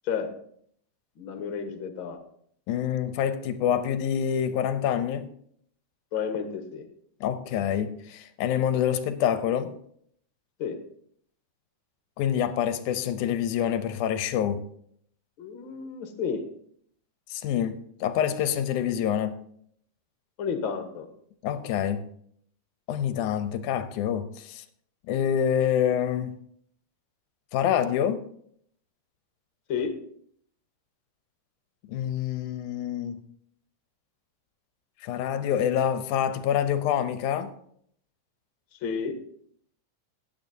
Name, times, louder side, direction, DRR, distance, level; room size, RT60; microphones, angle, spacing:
voice 1, 1.2-2.2 6.1-6.8 10.6-10.8 15.4-16.4 20.4-21.1 29.7-29.9 38.8-39.2, left 6 dB, 55° left, 1.5 m, -31 dB
voice 2, 2.7-5.3 7.2-9.7 12.2-14.7 17.3-19.4 21.4-22.1 22.9-24.6 25.1-26.3 27.5-28.2 31.9-33.2 35.0-37.5, left 9 dB, 80° left, 2.0 m, -26 dB
15.5 x 9.1 x 2.7 m
omnidirectional pair, 3.8 m